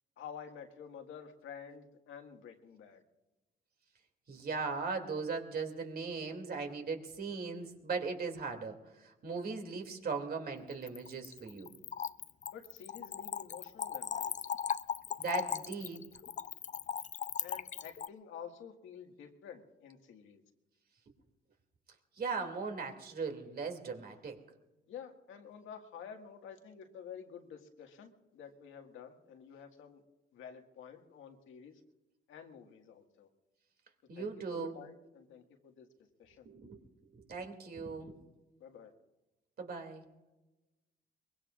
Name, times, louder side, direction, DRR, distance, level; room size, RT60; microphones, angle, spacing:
voice 1, 0.2-3.0 12.5-14.3 17.4-20.4 24.9-30.0 30.3-31.8 32.3-33.3 34.2-35.9 36.2-36.5 38.6-38.9, left 7 dB, 80° left, 3 dB, 1.8 m, -50 dB
voice 2, 4.3-8.8 9.0-11.7 15.2-16.0 22.2-24.4 34.1-34.8 36.5-36.8 37.1-38.2 39.6-40.0, right 4 dB, 50° right, 4 dB, 2.6 m, -38 dB
Splash splatter / Trickle dribble, 10.7-18.1, left 8 dB, 40° left, 0.4 m, -38 dB
23.5 x 22.0 x 2.5 m, 1.1 s
cardioid pair, 90°, 20 cm